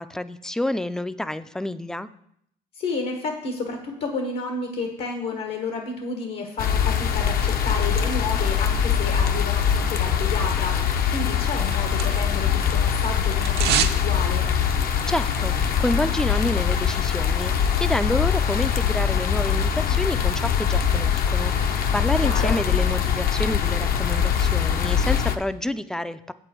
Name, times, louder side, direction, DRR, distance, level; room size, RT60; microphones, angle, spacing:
voice 1, 0.0-2.1 14.8-26.3, left 1 dB, 5° left, 13 dB, 0.4 m, -28 dB
voice 2, 2.7-14.5 22.2-22.6, left 4 dB, 80° left, 3 dB, 1.5 m, -31 dB
sound 1, 6.6-25.4, left 8 dB, 60° left, 0.8 m, -22 dB
sound 2, 11.3-12.5 12.7-14.0 14.3-14.4, right 10 dB, 75° right, 0.8 m, -27 dB
8.1 x 7.9 x 4.5 m, 0.72 s
cardioid pair, 110°, 17 cm